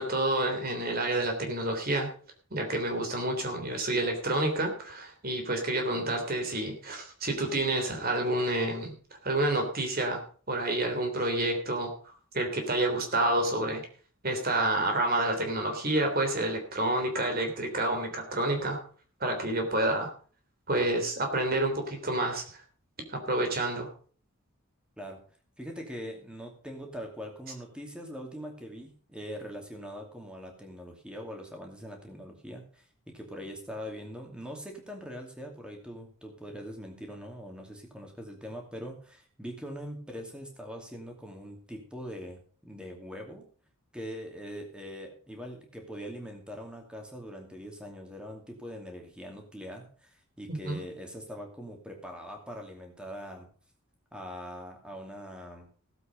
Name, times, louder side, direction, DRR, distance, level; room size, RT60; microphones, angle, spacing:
voice 1, 0.0-2.1 2.5-8.9 9.2-10.2 10.5-11.9 12.3-13.8 14.2-18.8 19.2-20.1 20.7-22.4 23.1-23.9 50.5-50.8, right 2 dB, 40° right, 4 dB, 3.3 m, -29 dB
voice 2, 25.6-43.4 43.9-53.5 54.1-55.7, equal, 5° right, 2 dB, 2.6 m, -42 dB
17.0 x 8.0 x 5.3 m, 0.43 s
head